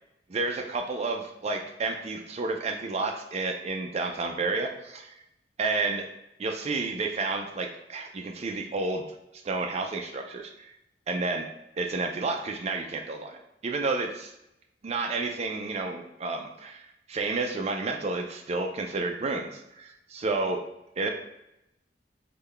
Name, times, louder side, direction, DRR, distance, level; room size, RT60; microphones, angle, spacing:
voice 1, 0.3-5.1 5.6-6.1 6.4-9.0 9.4-10.7 11.1-11.5 11.8-14.3 14.8-16.8 17.1-20.6 21.0-21.1, right 3 dB, 35° right, 3 dB, 0.4 m, -30 dB
3.8 x 2.2 x 3.2 m, 0.85 s
head